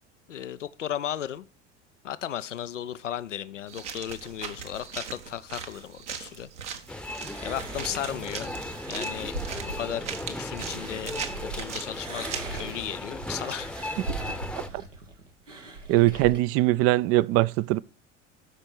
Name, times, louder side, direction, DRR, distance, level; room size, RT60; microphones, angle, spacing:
voice 1, 0.3-1.4 2.0-6.5 7.4-8.5 8.9-9.3 9.6-11.2 11.4-13.8 16.1-16.2, left 10 dB, 85° left, 0.5 m, -35 dB
sound 1, 3.7-12.6, right 7 dB, 75° right, 1.5 m, -40 dB
sound 2, 6.9-14.7, left 1 dB, 5° left, 0.8 m, -37 dB
sound 3, 7.2-11.6 11.9-16.4, right 3 dB, 90° right, 1.4 m, -40 dB
voice 2, 15.9-17.8, right 17 dB, 40° right, 0.4 m, -21 dB
12.5 x 5.2 x 4.4 m
figure-of-eight pair, 65°, 36 cm